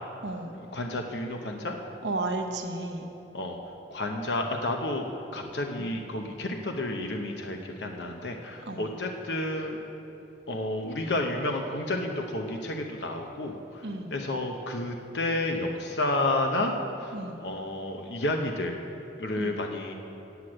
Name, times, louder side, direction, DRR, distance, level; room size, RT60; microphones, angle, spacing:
voice 1, 0.2-0.6 2.0-3.1 5.8-6.0 8.7-9.0 13.8-14.2 17.1-17.5 19.4-19.6, right 2 dB, 90° right, 4 dB, 1.0 m, -34 dB
voice 2, 0.7-1.8 3.3-3.6 3.9-9.8 10.5-13.8 14.1-16.7 17.0-17.1 17.4-18.8 19.2-19.9, left 2 dB, 85° left, 3 dB, 0.8 m, -31 dB
8.1 x 7.8 x 8.7 m, 3.0 s
head